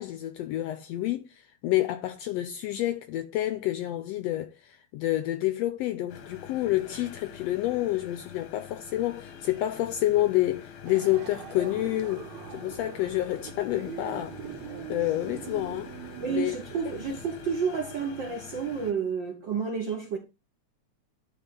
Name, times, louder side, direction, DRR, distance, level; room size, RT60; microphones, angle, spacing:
voice 1, 0.0-14.4 14.9-15.9 16.3-16.6, left 15 dB, 80° left, 1.5 m, -29 dB
sound 1, 6.1-18.9, left 8 dB, 65° left, 1.4 m, -46 dB
sound 2, 10.9-17.6, right 10 dB, 75° right, 2.3 m, -42 dB
voice 2, 16.2-20.2, right 6 dB, 60° right, 1.2 m, -30 dB
11.0 x 4.0 x 3.7 m
omnidirectional pair, 3.4 m